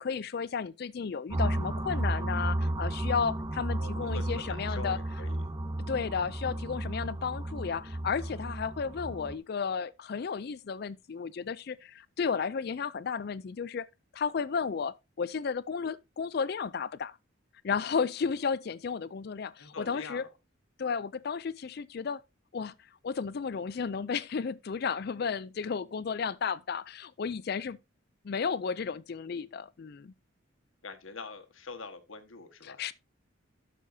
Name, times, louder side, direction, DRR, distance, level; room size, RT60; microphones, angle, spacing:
voice 1, 0.0-5.0 5.9-13.9 14.1-17.2 17.6-20.2 20.8-22.2 22.5-22.7 23.0-27.8 28.2-30.1 32.6-32.9, left 6 dB, 50° left, 0.4 m, -33 dB
sound 1, 1.3-9.4, right 1 dB, 20° right, 0.7 m, -33 dB
voice 2, 3.8-5.4 19.6-20.3 30.8-32.8, left 4 dB, 75° left, 1.5 m, -44 dB
12.0 x 6.8 x 2.7 m
head